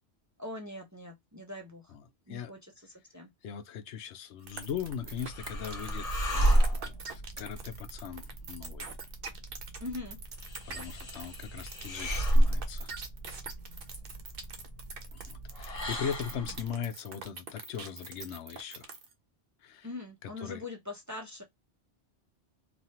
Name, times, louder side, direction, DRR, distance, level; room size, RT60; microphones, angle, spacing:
voice 1, 0.4-1.8 2.3-2.6 3.1-3.3 9.8-10.2 19.8-21.4, left 2 dB, 20° right, 0.5 m, -41 dB
voice 2, 3.4-8.9 10.6-13.0 15.1-18.9 19.6-19.9 20.2-20.6, left 8 dB, 80° left, 0.9 m, -40 dB
sound 1, 4.5-19.1, right 5 dB, 60° right, 0.8 m, -44 dB
sound 2, 4.7-16.7, right 1 dB, 35° left, 0.9 m, -32 dB
3.2 x 2.3 x 2.7 m
omnidirectional pair, 1.2 m